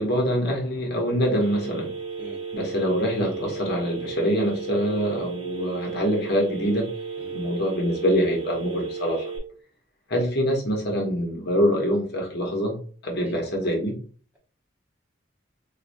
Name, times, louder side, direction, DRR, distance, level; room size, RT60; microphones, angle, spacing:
voice 1, 0.0-1.9 2.5-6.9 7.3-9.3 10.1-12.8 13.0-14.0, equal, 55° left, 1.0 m, -25 dB
Telephone, 1.4-9.4, right 5 dB, 30° right, 0.8 m, -34 dB
voice 2, 2.2-2.4 7.2-7.4 13.2-13.5, right 2 dB, 10° right, 1.2 m, -42 dB
4.7 x 2.4 x 2.6 m
head